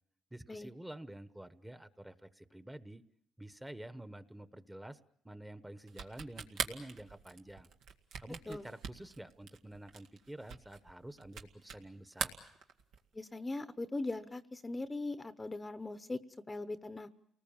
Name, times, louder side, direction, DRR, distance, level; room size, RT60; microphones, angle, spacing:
voice 1, 0.3-3.0 3.4-5.0 5.2-7.7 8.2-12.3, right 1 dB, 10° right, 12 dB, 1.1 m, -49 dB
sound 1, 5.9-11.9 12.1-13.1, right 6 dB, 85° right, 1.8 m, -42 dB
voice 2, 13.1-16.2 16.5-17.1, left 2 dB, 20° left, 11 dB, 0.9 m, -40 dB
29.5 x 19.5 x 7.2 m, 0.73 s
cardioid pair, 90°, 0 cm